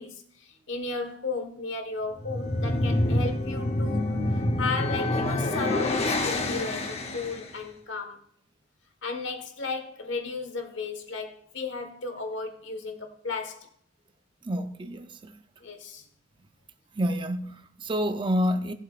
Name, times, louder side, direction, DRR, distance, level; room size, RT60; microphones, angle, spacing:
voice 1, 0.0-8.2 9.0-13.7 15.6-16.1, left 4 dB, 70° left, 1.4 m, -34 dB
sound 1, 2.1-7.5, left 1 dB, 30° left, 0.9 m, -27 dB
voice 2, 14.4-15.3 16.9-18.7, equal, 25° right, 0.5 m, -28 dB
17.5 x 7.8 x 2.5 m
head